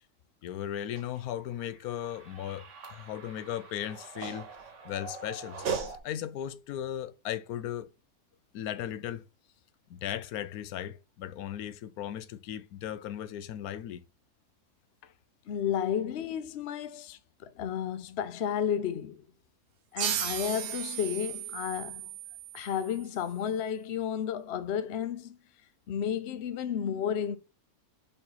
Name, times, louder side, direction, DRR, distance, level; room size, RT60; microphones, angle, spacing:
voice 1, 0.4-4.5 4.8-7.9 8.5-9.2 9.9-14.0, left 11 dB, 80° left, 1.1 m, -37 dB
sound 1, 1.0-6.0, right 5 dB, 55° right, 1.4 m, -39 dB
voice 2, 15.5-19.2 19.9-22.2 22.5-25.4 25.9-27.4, left 8 dB, 55° left, 0.8 m, -32 dB
sound 2, 20.0-23.2, right 11 dB, 75° right, 1.1 m, -36 dB
5.4 x 4.4 x 3.9 m
omnidirectional pair, 1.6 m